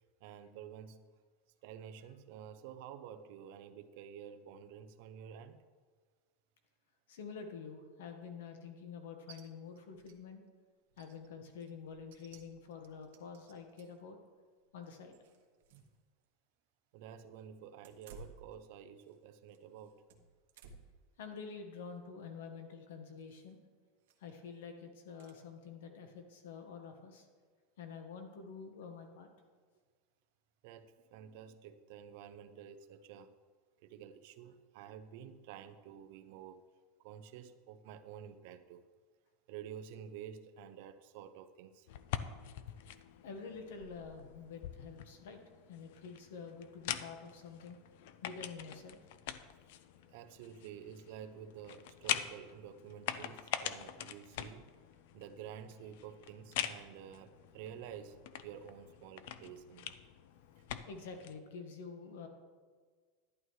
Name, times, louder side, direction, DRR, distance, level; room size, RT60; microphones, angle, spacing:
voice 1, 0.2-1.0 1.6-5.6 15.7-15.9 16.9-20.0 30.6-33.3 33.8-36.6 37.0-38.8 39.5-42.2 50.1-54.7 55.1-59.9, right 9 dB, 45° right, 10 dB, 0.5 m, -50 dB
voice 2, 7.1-10.4 11.0-14.2 14.7-15.2 21.2-23.6 24.2-27.3 27.8-29.3 43.2-45.4 45.7-47.8 48.2-49.1 60.9-62.3, left 5 dB, 85° left, 6 dB, 1.3 m, -48 dB
sound 1, 9.3-9.4 9.8-10.2 10.5-10.6 10.9-14.1 14.6-16.0 16.2-16.3 17.7-19.2 19.5-21.0 21.5-21.8 23.2-23.5 24.0-24.4 25.2-25.4, right 4 dB, 70° right, 1.1 m, -59 dB
sound 2, 41.9-61.4, left 11 dB, 55° left, 0.4 m, -44 dB
11.5 x 11.0 x 3.2 m, 1.5 s
supercardioid pair, 180°, 0 cm